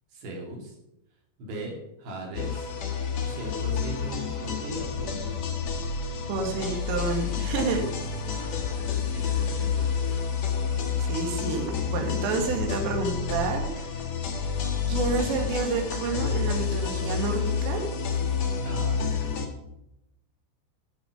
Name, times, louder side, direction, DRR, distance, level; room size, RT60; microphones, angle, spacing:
voice 1, 0.1-0.8 1.4-2.7 3.2-5.3 8.3-10.0 18.6-19.3, right 1 dB, 60° right, 0 dB, 4.4 m, -39 dB
sound 1, 2.3-19.5, left 6 dB, 85° left, 1.5 m, -29 dB
voice 2, 6.3-7.8 11.0-13.9 14.9-17.8, right 4 dB, 75° right, 3 dB, 4.4 m, -29 dB
13.0 x 6.6 x 7.0 m, 0.85 s
omnidirectional pair, 6.0 m